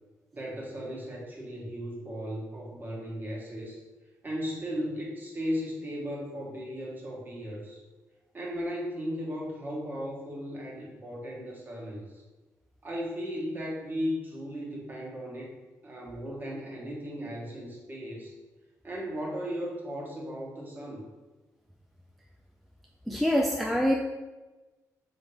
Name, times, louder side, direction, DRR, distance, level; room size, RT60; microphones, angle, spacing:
voice 1, 0.3-3.8 4.2-7.8 8.3-12.2 12.8-15.5 15.8-18.3 18.8-21.0, equal, 30° right, -2 dB, 1.3 m, -36 dB
voice 2, 23.1-23.9, equal, ahead, -1 dB, 0.4 m, -25 dB
4.7 x 3.6 x 3.1 m, 1.2 s
cardioid pair, 100°, 6 cm